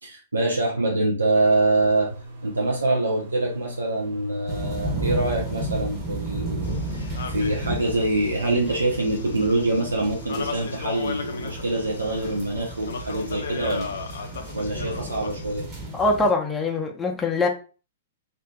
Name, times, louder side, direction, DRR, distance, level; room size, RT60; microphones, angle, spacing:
voice 1, 0.0-2.1 2.4-15.7, right 2 dB, 85° right, -2 dB, 0.5 m, -25 dB
sound 1, 1.4-14.3, right 1 dB, 60° right, 0.8 m, -42 dB
sound 2, 4.5-16.3, right 2 dB, 25° right, 1.0 m, -33 dB
sound 3, 6.6-15.6, left 5 dB, 65° left, 0.3 m, -37 dB
voice 2, 15.9-17.5, left 3 dB, 10° left, 1 dB, 0.6 m, -23 dB
2.5 x 2.5 x 2.2 m, 0.35 s
figure-of-eight pair, 110°, 0 cm